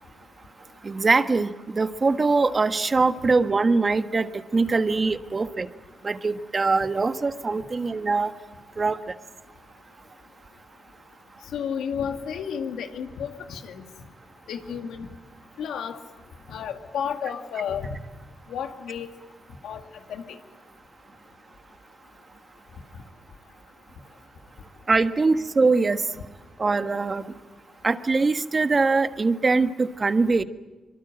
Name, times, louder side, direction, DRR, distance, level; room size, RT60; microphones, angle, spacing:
voice 1, 0.8-5.7 6.0-8.3 8.8-9.0 24.9-26.0 26.6-27.2 27.8-30.4, right 3 dB, 45° right, 9 dB, 1.5 m, -22 dB
voice 2, 11.5-13.8 14.5-15.1 15.6-16.0 16.5-17.9 18.5-19.1 19.6-19.8 20.1-20.2, left 7 dB, 90° left, 5 dB, 2.2 m, -31 dB
25.0 x 22.5 x 9.0 m, 1.2 s
supercardioid pair, 50°, 0 cm